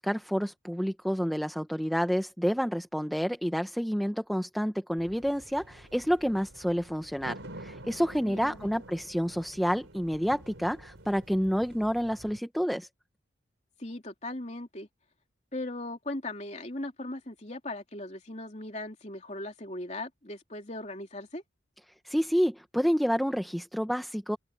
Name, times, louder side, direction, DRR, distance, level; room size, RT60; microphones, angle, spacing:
voice 1, 0.0-12.9 22.0-24.4, equal, ahead, 0.8 m, -29 dB
sound 1, 5.0-12.4, right 1 dB, 85° right, 3.9 m, -48 dB
voice 2, 8.2-8.8 13.8-14.9 15.5-21.4, left 2 dB, 35° left, 3.3 m, -38 dB
open air
head